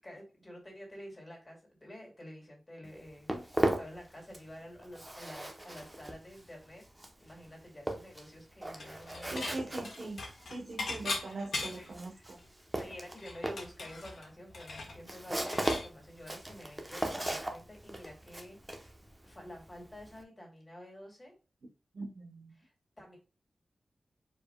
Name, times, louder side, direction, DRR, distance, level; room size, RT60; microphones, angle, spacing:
voice 1, 0.0-6.8 7.2-9.8 11.8-12.3 12.8-18.9 19.2-21.3 22.6-23.2, equal, 20° left, 0 dB, 2.3 m, -49 dB
Walk footsteps, 2.8-4.6 4.8-20.2, right 1 dB, 15° right, 0.9 m, -38 dB
Dishes pots and pans / Chink clink, 8.8-9.6 9.8-12.0 12.4-12.5 12.8-15.9, left 3 dB, 80° left, 1.3 m, -39 dB
voice 2, 9.3-12.4 21.9-22.5, right 2 dB, 60° right, 3 dB, 1.0 m, -41 dB
5.0 x 4.6 x 2.3 m, 0.33 s
wide cardioid pair, 140°, 0 cm